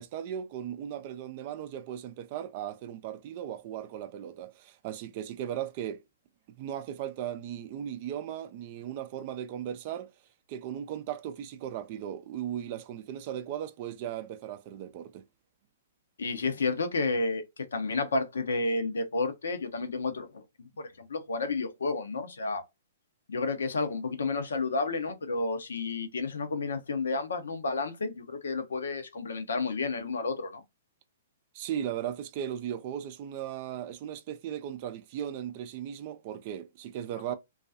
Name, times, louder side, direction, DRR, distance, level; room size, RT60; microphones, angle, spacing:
voice 1, 0.0-6.0 6.6-10.1 10.5-15.2 31.5-37.3, right 10 dB, 40° right, 0.4 m, -37 dB
voice 2, 16.2-22.6 23.3-30.6, left 3 dB, 70° left, 0.6 m, -31 dB
2.3 x 2.3 x 2.5 m
figure-of-eight pair, 115°, 0 cm